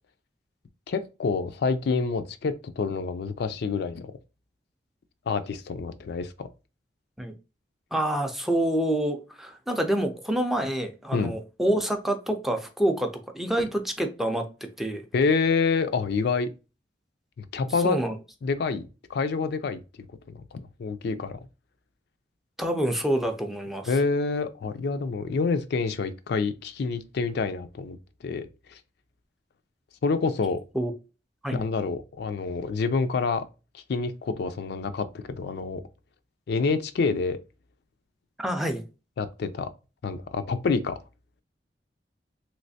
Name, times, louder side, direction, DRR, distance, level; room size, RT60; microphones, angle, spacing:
voice 1, 0.9-4.1 5.3-6.5 11.1-11.4 15.1-16.5 17.4-18.0 18.4-18.8 19.1-19.8 20.3-21.4 23.9-28.0 28.2-28.8 30.0-30.6 31.5-33.4 33.7-35.8 36.5-37.4 39.2-39.7 40.0-41.0, left 4 dB, 65° left, 0.4 m, -27 dB
voice 2, 7.9-14.5 14.8-15.0 17.8-18.2 22.6-23.9 30.7-30.9 31.4-31.6 38.4-38.8, right 1 dB, ahead, 0.4 m, -27 dB
3.2 x 3.0 x 2.6 m
head